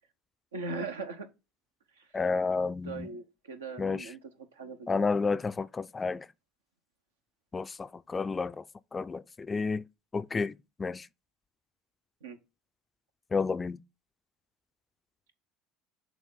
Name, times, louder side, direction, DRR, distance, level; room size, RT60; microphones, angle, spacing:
voice 1, 0.5-1.3 2.0-2.1 2.9-4.2 4.5-5.1 12.2-12.4, right 3 dB, 90° right, 0.8 m, -39 dB
voice 2, 2.1-3.1 3.8-4.1 4.9-6.3 7.5-8.6 8.9-9.8 10.1-11.1 13.3-13.8, left 4 dB, 25° left, 0.3 m, -31 dB
6.3 x 3.1 x 5.3 m
hypercardioid pair, 75°, 0 cm